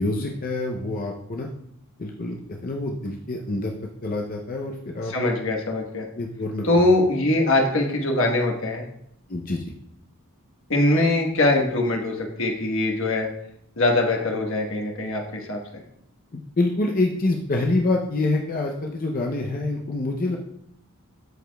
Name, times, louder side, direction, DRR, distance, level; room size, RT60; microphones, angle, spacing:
voice 1, 0.0-1.5 2.0-3.7 4.0-5.1 6.2-6.7 9.3-9.7 16.3-20.4, left 2 dB, 40° left, 1 dB, 0.6 m, -26 dB
voice 2, 5.1-6.0 6.6-8.8 10.7-13.3 13.8-15.6, left 2 dB, 60° left, 1 dB, 1.3 m, -22 dB
12.5 x 4.9 x 2.3 m, 0.74 s
head